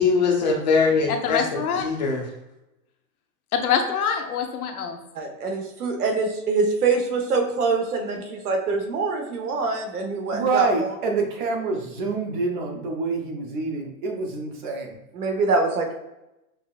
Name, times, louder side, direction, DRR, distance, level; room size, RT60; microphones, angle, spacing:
voice 1, 0.0-2.3, left 4 dB, 30° left, 0 dB, 0.5 m, -22 dB
voice 2, 1.1-1.9 3.5-5.0, left 7 dB, 85° left, 5 dB, 0.8 m, -25 dB
voice 3, 5.1-10.9 15.1-15.9, right 4 dB, 90° right, 3 dB, 1.2 m, -24 dB
voice 4, 10.3-14.9, right 4 dB, 35° right, 2 dB, 0.6 m, -26 dB
5.6 x 2.4 x 2.4 m, 0.92 s
supercardioid pair, 165°, 43 cm